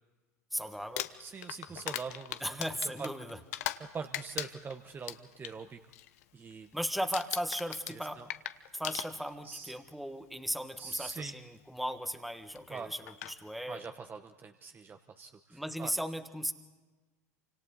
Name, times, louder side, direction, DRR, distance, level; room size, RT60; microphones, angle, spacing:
voice 1, 0.5-1.1 2.4-3.4 6.7-8.2 8.7-13.8 15.5-16.5, equal, ahead, 9 dB, 1.6 m, -36 dB
Crumpling crinkling, 0.8-3.9 4.1-5.5 5.9-6.2 6.5-6.8 7.1-9.5 10.5-10.6 12.6-12.7 13.1-13.4, left 14 dB, 65° left, 1.1 m, -39 dB
voice 2, 1.2-2.6 3.0-3.1 3.8-5.8 6.3-6.7 7.9-8.3 9.4-9.7 10.8-11.3 12.7-12.9 13.7-15.9, right 5 dB, 20° right, 7 dB, 1.1 m, -43 dB
28.5 x 26.0 x 4.1 m, 1.2 s
hypercardioid pair, 85°, 9 cm